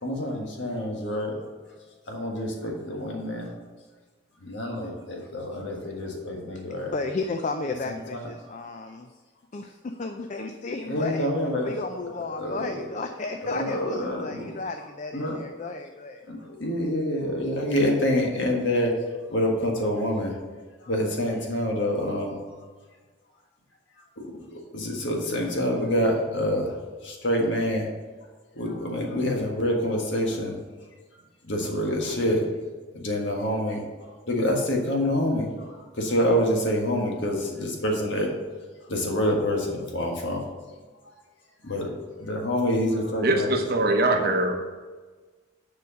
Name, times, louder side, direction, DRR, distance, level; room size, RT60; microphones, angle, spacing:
voice 1, 0.0-1.4 2.0-3.6 4.4-6.9 7.8-8.3 10.8-11.7 12.0-12.1 12.4-12.9 13.4-14.5 15.1-15.4 16.3-20.4 20.8-22.7 24.0-27.9 28.5-30.6 31.1-32.5 32.9-38.3 38.9-40.5 41.0-41.2 41.6-43.8, left 1 dB, 70° left, 0 dB, 1.6 m, -27 dB
voice 2, 6.8-9.1 9.5-11.3 11.6-16.3, left 3 dB, 40° left, 6 dB, 0.4 m, -33 dB
voice 3, 43.2-44.5, right 2 dB, 55° right, 3 dB, 0.9 m, -22 dB
7.0 x 4.9 x 6.4 m, 1.4 s
head